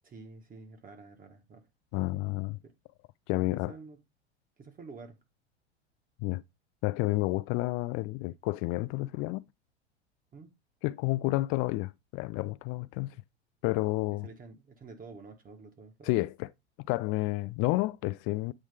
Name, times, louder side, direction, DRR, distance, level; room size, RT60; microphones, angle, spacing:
voice 1, 0.0-1.7 1.9-2.2 2.6-2.7 3.3-4.0 4.6-5.2 10.3-10.5 14.1-16.1, right 4 dB, 25° right, 1.5 m, -49 dB
voice 2, 1.9-2.6 3.3-3.7 6.2-6.4 6.8-9.4 10.8-13.2 13.6-14.3 16.0-16.5 16.9-18.5, left 20 dB, 40° left, 0.4 m, -30 dB
8.8 x 3.1 x 3.5 m
hypercardioid pair, 85°, 33 cm